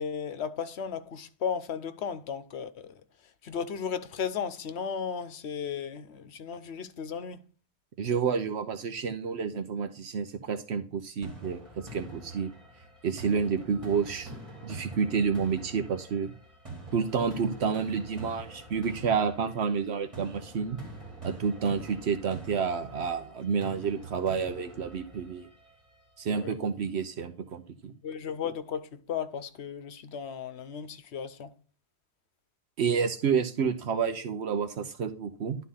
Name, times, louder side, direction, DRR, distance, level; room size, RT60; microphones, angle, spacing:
voice 1, 0.0-3.0 3.4-7.4 26.3-26.5 28.0-31.5, left 7 dB, 75° left, 1.0 m, -35 dB
voice 2, 8.0-12.5 13.0-14.3 14.6-16.3 16.9-20.8 21.2-25.5 26.2-27.9 32.8-35.6, right 6 dB, 75° right, 1.1 m, -29 dB
sound 1, 11.2-26.2, right 2 dB, 30° right, 3.2 m, -45 dB
11.5 x 4.1 x 5.5 m
omnidirectional pair, 1.1 m